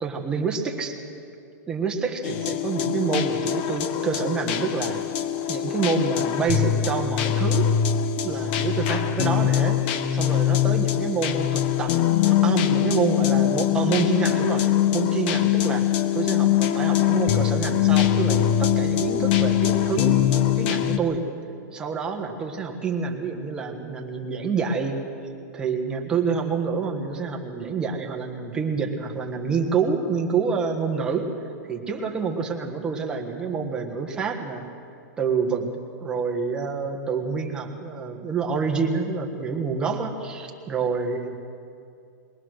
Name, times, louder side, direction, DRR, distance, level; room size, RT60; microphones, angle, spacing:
voice 1, 0.0-1.0 1.7-5.0 5.5-7.7 8.2-9.8 10.1-15.8 16.1-20.3 20.5-21.3 21.7-25.1 25.5-31.3 31.7-34.7 35.2-41.3, right 5 dB, 10° right, 1 dB, 1.4 m, -27 dB
sound 1, 2.2-21.0, left 10 dB, 35° left, 0.8 m, -22 dB
22.0 x 18.5 x 6.4 m, 2.5 s
supercardioid pair, 170°, 10 cm